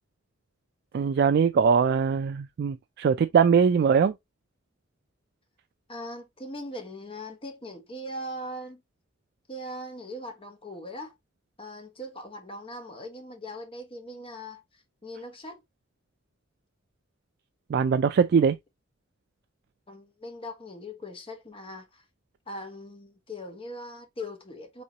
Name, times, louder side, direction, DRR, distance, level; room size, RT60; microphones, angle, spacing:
voice 1, 0.9-4.1 17.7-18.6, right 6 dB, 50° right, 0.3 m, -22 dB
voice 2, 5.9-8.8 9.5-11.2 11.6-15.6 19.9-22.0 22.5-24.8, left 1 dB, 25° left, 1.2 m, -40 dB
4.3 x 3.7 x 2.8 m
head